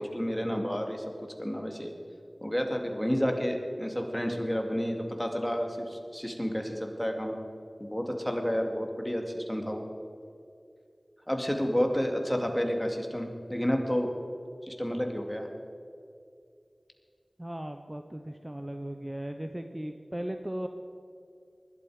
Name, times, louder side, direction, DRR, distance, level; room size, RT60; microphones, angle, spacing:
voice 1, 0.0-1.9 2.4-7.4 7.8-9.9 11.3-14.1 14.7-15.5, equal, 10° left, 3 dB, 2.4 m, -30 dB
voice 2, 17.4-20.7, right 1 dB, 20° right, 6 dB, 0.8 m, -37 dB
20.0 x 12.5 x 5.0 m, 2.5 s
wide cardioid pair, 55°, 0 cm